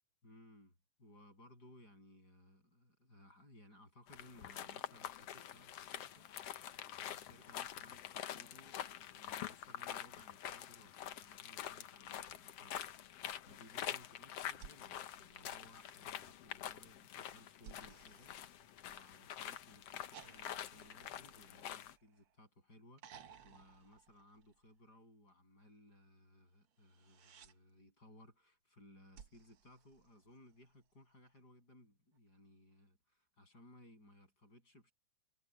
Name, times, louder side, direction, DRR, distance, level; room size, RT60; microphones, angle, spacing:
voice 1, 0.2-6.3 6.9-12.8 13.3-18.4 18.9-34.9, left 1 dB, 25° left, 8.2 m, -62 dB
sound 1, 4.1-21.9, left 10 dB, 80° left, 1.4 m, -47 dB
sound 2, 14.5-16.1 17.6-19.3 20.1-22.4 23.0-24.8 26.8-27.6 29.1-30.6 32.2-32.3, right 8 dB, 70° right, 1.3 m, -60 dB
omnidirectional pair, 4.3 m